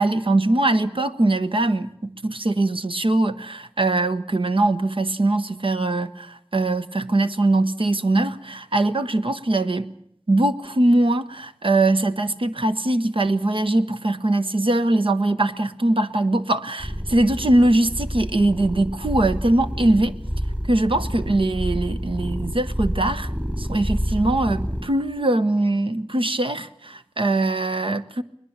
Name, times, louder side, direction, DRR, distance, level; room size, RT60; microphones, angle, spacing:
voice 1, 0.0-9.9 10.3-20.1 20.7-23.3 23.6-28.2, right 2 dB, 65° right, 1.1 m, -21 dB
sound 1, 16.8-24.8, equal, 15° right, 5.3 m, -28 dB
21.5 x 21.0 x 7.3 m
wide cardioid pair, 55°, 10 cm